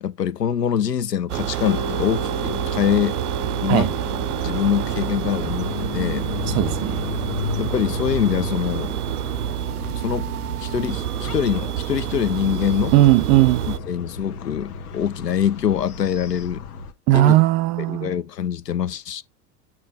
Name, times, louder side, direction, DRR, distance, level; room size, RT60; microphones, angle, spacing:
voice 1, 0.0-3.2 3.6-3.9 4.4-6.3 7.6-8.9 10.0-10.3 10.6-13.0 13.7-16.6 17.1-17.3 17.9-19.2, left 9 dB, 85° left, 0.7 m, -24 dB
sound 1, 1.3-13.8, right 13 dB, 70° right, 0.5 m, -28 dB
Mallet percussion, 1.6-10.4, left 3 dB, 25° left, 1.8 m, -37 dB
sound 2, 1.9-16.9, left 7 dB, 65° left, 1.3 m, -35 dB
voice 2, 6.5-7.0 12.9-13.7 17.1-18.1, right 15 dB, 20° right, 0.3 m, -17 dB
8.4 x 4.3 x 3.5 m
figure-of-eight pair, 90°, 47 cm